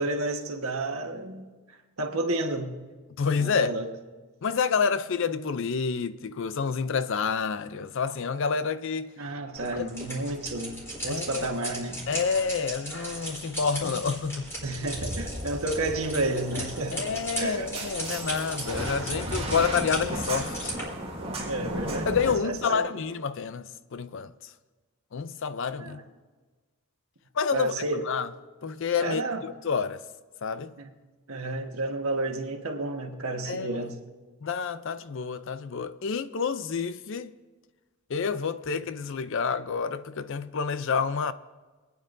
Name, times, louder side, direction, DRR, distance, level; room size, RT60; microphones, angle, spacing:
voice 1, 0.0-1.5 2.0-2.8 3.4-3.9 9.2-12.0 14.6-17.1 17.4-17.7 21.4-22.1 22.4-22.9 25.8-26.0 27.5-28.0 29.0-29.4 30.8-30.9 31.3-34.0, right 2 dB, 75° right, 1.3 m, -31 dB
voice 2, 3.2-3.7 4.4-9.1 9.8-9.9 11.1-11.5 12.1-14.5 16.9-20.7 22.1-24.3 25.1-26.0 27.4-28.3 28.6-30.0 30.4-30.7 33.5-33.8 34.4-37.3 38.1-41.3, left 5 dB, 60° left, 0.5 m, -28 dB
sound 1, 9.5-20.8, right 1 dB, 10° left, 3.6 m, -37 dB
sound 2, 14.9-22.3, right 1 dB, 25° right, 1.8 m, -35 dB
26.5 x 9.6 x 2.6 m
head